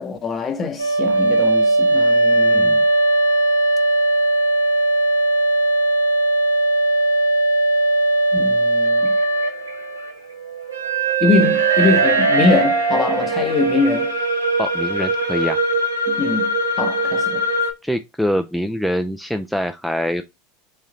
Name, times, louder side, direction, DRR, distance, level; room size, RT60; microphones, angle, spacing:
voice 1, 0.0-2.8 8.3-9.1 11.2-14.1 16.1-17.5, left 4 dB, 30° left, 0.8 m, -22 dB
sound 1, 0.8-17.7, right 2 dB, 85° right, 0.7 m, -19 dB
voice 2, 2.5-2.8 14.6-15.6 17.8-20.2, equal, ahead, 0.3 m, -24 dB
3.4 x 2.7 x 3.7 m
hypercardioid pair, 85°, 0 cm